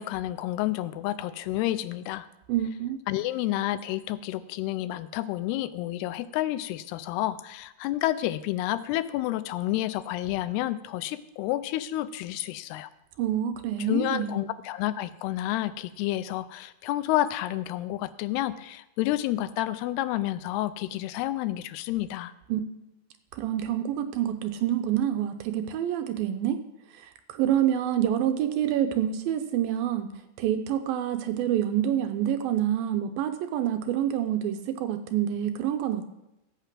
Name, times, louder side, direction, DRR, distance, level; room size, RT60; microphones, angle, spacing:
voice 1, 0.0-2.3 3.1-12.9 13.9-22.3, left 14 dB, 90° left, 14 dB, 2.7 m, -30 dB
voice 2, 2.5-3.0 13.2-14.3 22.5-22.6 23.3-26.6 26.9-30.1 30.4-36.1, right 10 dB, 80° right, 8 dB, 2.2 m, -27 dB
16.0 x 5.9 x 7.5 m, 0.92 s
omnidirectional pair, 4.6 m